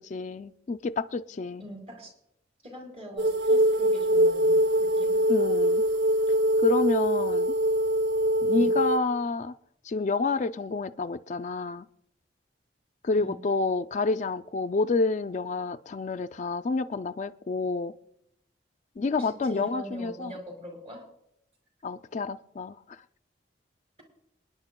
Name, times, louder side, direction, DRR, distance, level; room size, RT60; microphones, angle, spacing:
voice 1, 0.0-1.6 5.3-5.8 6.6-7.6 8.4-9.5 9.8-11.8 13.0-17.9 19.0-20.3 21.8-23.0, left 3 dB, 45° left, 0.3 m, -29 dB
voice 2, 1.6-2.1 2.6-5.2 8.5-8.7 13.1-13.4 19.1-21.0, equal, 35° right, 4.1 m, -43 dB
sound 1, 3.2-9.0, right 1 dB, 80° right, 0.6 m, -23 dB
27.0 x 10.0 x 2.2 m
head